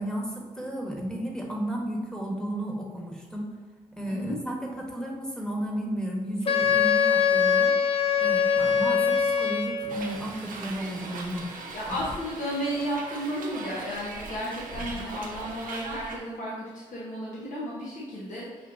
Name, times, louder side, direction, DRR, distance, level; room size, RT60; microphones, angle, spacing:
voice 1, 0.0-3.5 3.9-7.7 8.2-11.5 11.9-12.0 14.9-15.0, right 1 dB, 5° left, -1 dB, 1.3 m, -33 dB
voice 2, 4.1-4.4 11.7-18.7, equal, 60° left, -6 dB, 1.0 m, -33 dB
Wind instrument woodwind instrument, 6.5-10.0, left 7 dB, 40° left, 0.5 m, -23 dB
Hiss, 9.9-16.2, right 3 dB, 70° right, 0.7 m, -40 dB
6.0 x 2.7 x 2.6 m, 1.4 s
supercardioid pair, 45°, 15 cm